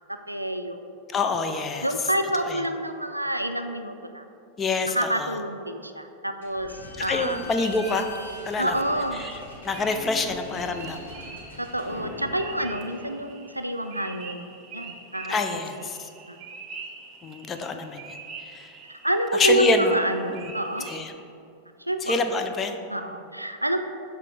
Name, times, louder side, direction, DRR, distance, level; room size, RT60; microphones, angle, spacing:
voice 1, 0.1-0.9 1.8-4.2 4.9-7.4 8.6-9.3 11.6-15.5 15.8-15.9 16.3-16.4 19.0-20.9 21.8-22.2 22.9-23.8, right 1 dB, 85° right, 7 dB, 0.3 m, -28 dB
voice 2, 1.1-1.9 2.5-2.6 4.6-5.3 7.0-8.1 8.5-8.7 9.2-9.4 9.6-11.1 15.3-16.1 17.2-18.1 18.4-18.7 19.3-20.0 20.3-20.5 20.9-21.1 22.0-22.8, left 3 dB, 20° left, 6 dB, 0.4 m, -26 dB
Slam / Squeak, 6.4-13.7, left 2 dB, 65° left, 1.3 m, -42 dB
sound 1, 7.3-21.0, right 5 dB, 35° right, 0.8 m, -44 dB
6.7 x 3.3 x 4.7 m, 2.6 s
figure-of-eight pair, 90°, 0 cm